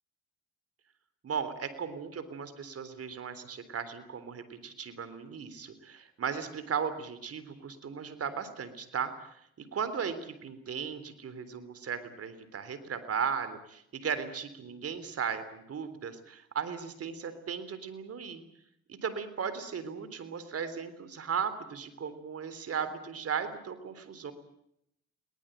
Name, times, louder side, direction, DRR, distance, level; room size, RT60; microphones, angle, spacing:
voice 1, 1.2-9.3 9.6-18.4 18.9-24.3, right 6 dB, 50° right, 11 dB, 3.7 m, -36 dB
22.0 x 19.5 x 9.2 m, 0.74 s
cardioid pair, 90°, 30 cm